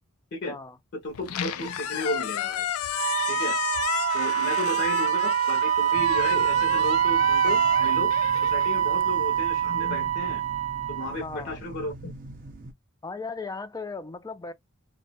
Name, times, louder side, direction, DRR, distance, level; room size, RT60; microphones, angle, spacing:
voice 1, 0.9-2.7 3.3-3.6 4.1-10.4 10.9-12.1, left 1 dB, 55° left, 0.6 m, -34 dB
Squeak, 1.1-9.4, left 10 dB, 90° left, 0.3 m, -33 dB
Wind instrument woodwind instrument, 2.9-11.2, right 10 dB, 80° right, 0.6 m, -24 dB
sound 1, 5.9-12.7, right 1 dB, 40° right, 0.6 m, -44 dB
voice 2, 11.2-11.6 13.0-14.5, left 4 dB, 15° left, 0.3 m, -37 dB
2.1 x 2.0 x 2.8 m
head